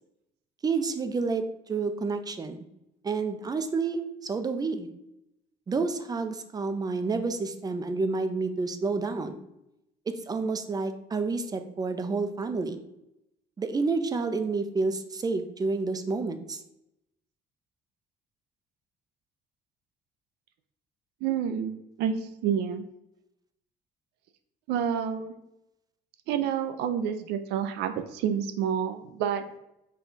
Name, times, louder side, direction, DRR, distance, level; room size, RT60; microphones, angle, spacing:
voice 1, 0.6-2.7 3.0-4.9 5.7-9.4 10.2-12.8 13.6-16.6, right 4 dB, 25° right, 9 dB, 0.4 m, -29 dB
voice 2, 21.2-21.7 22.0-22.8 24.7-25.3 26.3-29.4, right 8 dB, 85° right, 8 dB, 0.4 m, -28 dB
4.4 x 2.3 x 3.9 m, 0.85 s
cardioid pair, 110°, 17 cm